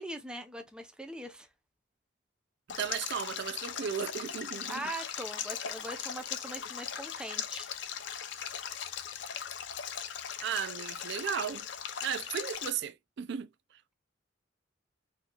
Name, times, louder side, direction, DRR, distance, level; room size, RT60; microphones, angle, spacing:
voice 1, 0.0-1.5 4.7-7.7, right 1 dB, 5° right, 0.7 m, -41 dB
Stream, 2.7-12.7, left 8 dB, 70° left, 0.6 m, -39 dB
voice 2, 2.8-4.8 10.4-11.7 12.0-13.5, right 8 dB, 65° right, 0.4 m, -35 dB
4.0 x 2.8 x 2.3 m
head